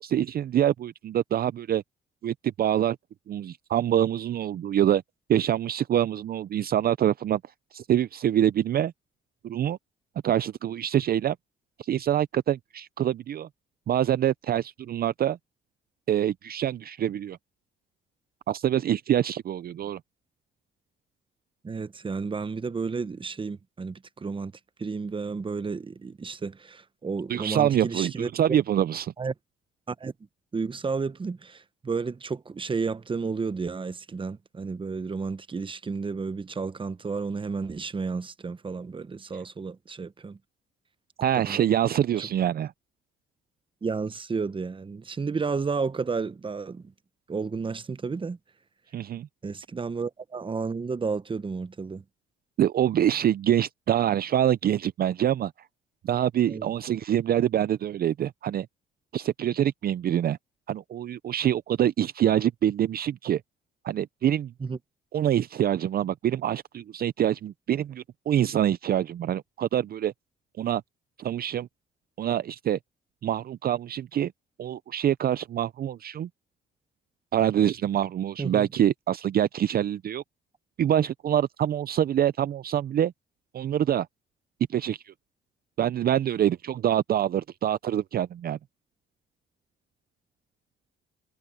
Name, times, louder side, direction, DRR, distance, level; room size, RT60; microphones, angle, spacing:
voice 1, 0.0-1.8 2.2-3.0 3.3-5.0 5.3-7.4 7.7-8.9 9.4-9.8 10.2-11.4 11.8-13.5 13.9-15.4 16.1-17.4 18.5-20.0 27.3-29.1 41.2-42.7 48.9-49.3 52.6-55.5 56.0-58.7 59.1-60.4 60.7-63.4 63.8-64.5 65.1-70.1 70.6-70.8 71.2-71.7 72.2-72.8 73.2-74.3 74.6-76.3 77.3-80.2 80.8-83.1 83.5-84.1 84.7-85.1 85.8-88.6, right 10 dB, 50° right, 0.5 m, -25 dB
voice 2, 21.6-24.5 24.8-28.3 29.2-29.3 29.9-30.1 30.5-40.4 41.3-41.6 42.2-42.3 43.8-46.8 47.3-48.4 49.4-52.0 56.5-56.7 64.6-64.8 78.4-78.7, right 4 dB, 25° right, 0.9 m, -32 dB
cardioid pair, 90°, 20 cm